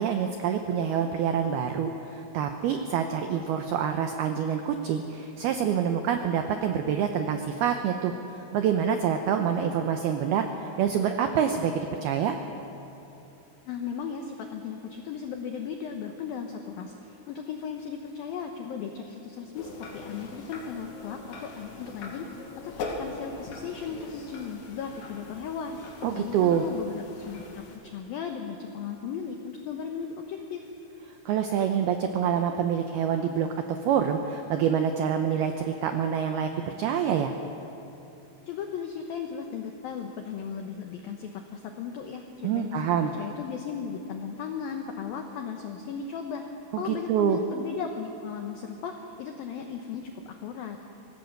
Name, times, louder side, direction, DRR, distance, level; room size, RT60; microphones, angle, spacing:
voice 1, 0.0-8.1 8.5-12.4 26.0-26.6 31.3-36.5 36.8-37.3 42.4-43.1 46.7-47.4, right 8 dB, 90° right, 6 dB, 2.2 m, -26 dB
voice 2, 13.7-30.7 38.5-50.8, left 6 dB, 90° left, 4 dB, 2.0 m, -36 dB
sound 1, 19.5-27.8, left 3 dB, 65° left, 4.3 m, -41 dB
24.5 x 17.5 x 6.6 m, 3.0 s
omnidirectional pair, 5.7 m